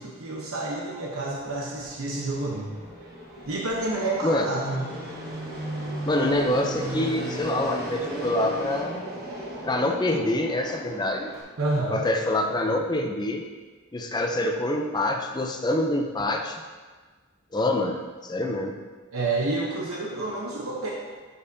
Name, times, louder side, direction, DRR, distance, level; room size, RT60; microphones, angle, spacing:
voice 1, 0.0-2.8 3.5-4.9 11.6-12.0 19.1-20.9, right 2 dB, 80° right, -3 dB, 1.0 m, -29 dB
Fixed-wing aircraft airplane, 1.2-11.4, right 1 dB, 45° right, 1.2 m, -36 dB
voice 2, 6.0-9.0 9.6-11.3 11.9-13.4 13.9-16.6 17.5-18.8, left 1 dB, 20° left, 3 dB, 0.5 m, -26 dB
11.0 x 5.4 x 2.7 m, 1.4 s
head